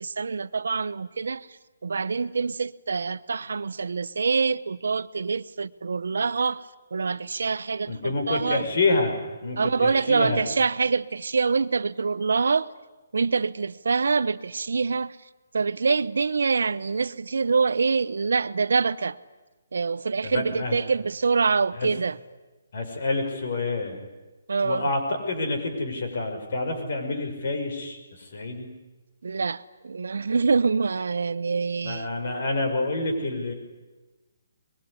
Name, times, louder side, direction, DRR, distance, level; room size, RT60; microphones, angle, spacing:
voice 1, 0.0-8.7 9.6-12.7 13.1-15.2 15.5-19.2 19.7-22.2 24.5-24.9 29.2-32.1, right 4 dB, 65° right, 0.9 m, -25 dB
voice 2, 7.9-9.1 9.4-10.4 20.2-20.8 21.8-21.9 22.7-24.0 24.6-28.7 31.8-33.5, left 2 dB, 40° left, 5.8 m, -28 dB
24.0 x 22.5 x 10.0 m
hypercardioid pair, 180°, 0 cm